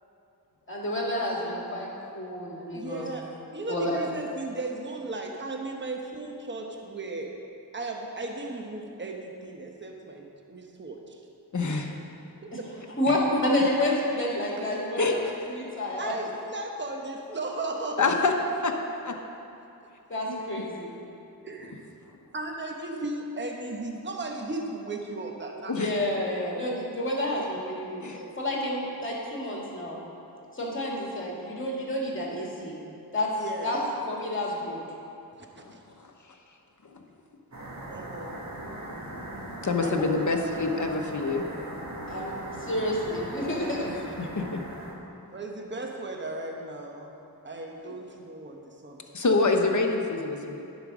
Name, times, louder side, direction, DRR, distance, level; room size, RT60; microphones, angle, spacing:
voice 1, 0.7-3.1 3.7-4.0 12.5-12.6 13.0-15.2 15.5-16.1 20.1-20.9 25.7-30.0 30.5-32.8 33.1-33.3 33.6-33.8 34.1-34.8 42.1-42.3 42.6-43.9, left 1 dB, 30° left, -3 dB, 2.3 m, -29 dB
voice 2, 2.7-3.3 3.5-7.3 7.7-11.2 11.7-11.8 12.6-12.7 16.0-18.2 21.4-21.8 22.3-25.9 33.4-33.8 35.7-35.8 37.9-38.4 39.8-40.3 40.7-41.5 45.3-47.1 47.4-49.0 49.3-49.5, right 2 dB, 30° right, 2 dB, 1.0 m, -36 dB
voice 3, 11.5-11.9 13.3-13.4 15.0-15.2 18.0-18.3 18.6-18.7 19.0-19.1 20.3-20.4 25.7-25.9 28.0-28.2 35.6-35.7 39.6-41.6 44.2-44.6 49.1-50.6, left 3 dB, 50° left, 3 dB, 1.0 m, -26 dB
sound 1, 37.5-44.9, right 1 dB, 45° right, 1.7 m, -39 dB
9.7 x 5.2 x 6.2 m, 2.8 s
wide cardioid pair, 55°, 39 cm